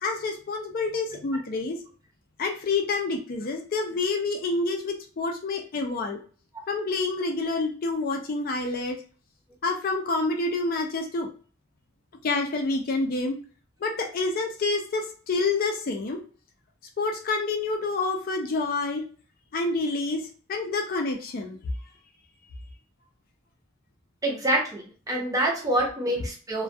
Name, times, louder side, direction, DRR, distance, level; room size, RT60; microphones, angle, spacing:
voice 1, 0.0-1.8 2.4-6.2 6.7-9.0 9.6-11.3 12.2-13.4 13.8-16.2 17.0-19.0 19.5-21.6, left 3 dB, 45° left, 3 dB, 0.4 m, -28 dB
voice 2, 24.2-26.6, right 1 dB, 20° right, -1 dB, 0.6 m, -26 dB
2.2 x 2.2 x 2.6 m, 0.39 s
head